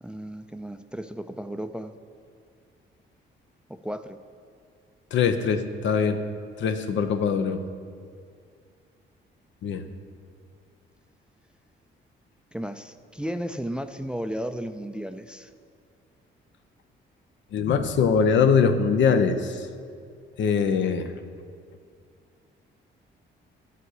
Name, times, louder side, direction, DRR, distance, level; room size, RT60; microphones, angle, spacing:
voice 1, 0.0-1.9 3.7-4.2 12.5-15.5, equal, 5° right, 9 dB, 0.4 m, -34 dB
voice 2, 5.1-6.2 6.6-7.6 9.6-9.8 17.5-19.6 20.4-21.1, left 6 dB, 70° left, 9 dB, 0.7 m, -22 dB
11.5 x 4.9 x 6.4 m, 2.2 s
cardioid pair, 90°, 20 cm